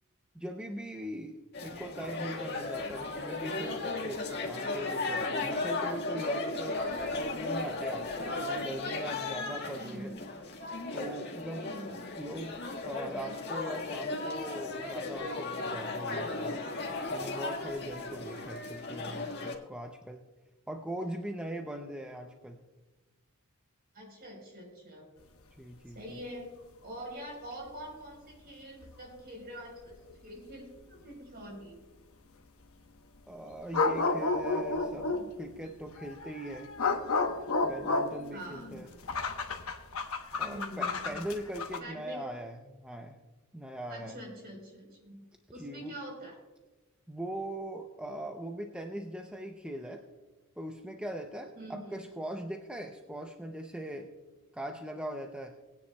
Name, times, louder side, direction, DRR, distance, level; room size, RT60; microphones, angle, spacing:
voice 1, 0.3-10.1 10.9-11.7 12.2-12.6 12.8-16.6 17.1-20.3 20.7-22.6 25.6-26.0 33.3-36.7 37.6-38.9 40.3-43.2 43.5-44.2 45.5-46.0 47.1-50.0 50.6-54.1 54.5-55.6, right 1 dB, 5° right, 3 dB, 0.5 m, -40 dB
sound 1, 1.5-19.6, left 3 dB, 50° left, 1.6 m, -36 dB
voice 2, 9.7-10.3 11.6-12.2 23.9-25.1 25.9-26.5 26.8-31.8 38.3-39.0 40.4-41.2 41.8-42.3 43.9-45.2 45.5-46.4 51.6-52.1, right 1 dB, 45° right, 0 dB, 3.9 m, -45 dB
sound 2, 28.8-28.9 29.9-30.0 33.7-35.3 36.0-41.8, left 3 dB, 70° left, 1.0 m, -31 dB
20.5 x 9.6 x 2.2 m, 1.2 s
head